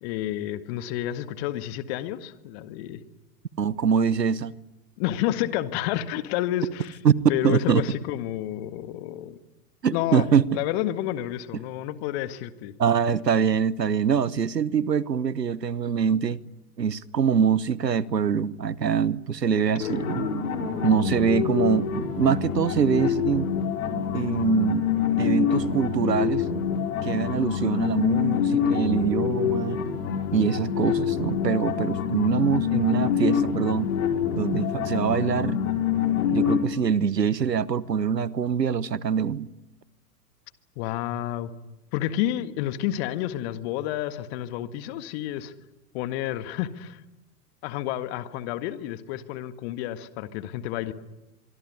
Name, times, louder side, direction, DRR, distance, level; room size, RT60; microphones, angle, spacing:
voice 1, 0.0-3.0 5.0-7.0 7.3-9.4 9.9-10.3 10.5-12.7 40.8-41.5 41.9-45.5 45.9-47.0 47.6-50.9, left 12 dB, 40° left, 1.9 m, -30 dB
voice 2, 3.6-4.5 7.0-7.2 7.4-7.8 9.8-10.4 12.8-16.4 16.8-20.3 20.8-23.5 24.1-24.8 25.2-26.4 27.0-29.8 30.3-33.9 34.4-35.6 36.3-39.5, right 7 dB, 80° right, 1.2 m, -24 dB
sound 1, 19.8-36.6, left 8 dB, 60° left, 5.3 m, -26 dB
25.5 x 24.5 x 9.6 m
figure-of-eight pair, 100°, 49 cm